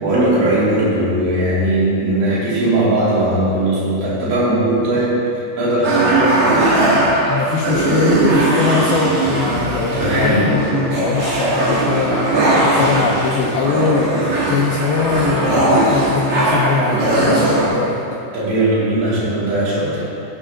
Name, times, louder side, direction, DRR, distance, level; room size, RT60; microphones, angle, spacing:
voice 1, 0.0-5.2 5.6-6.7 9.9-10.5 18.3-20.0, right 1 dB, 70° right, -9 dB, 5.5 m, -18 dB
sound 1, 5.8-17.6, right 2 dB, 45° right, 3.1 m, -18 dB
voice 2, 7.3-18.0, left 4 dB, 85° left, -2 dB, 2.1 m, -21 dB
16.5 x 8.9 x 3.8 m, 2.6 s
omnidirectional pair, 5.4 m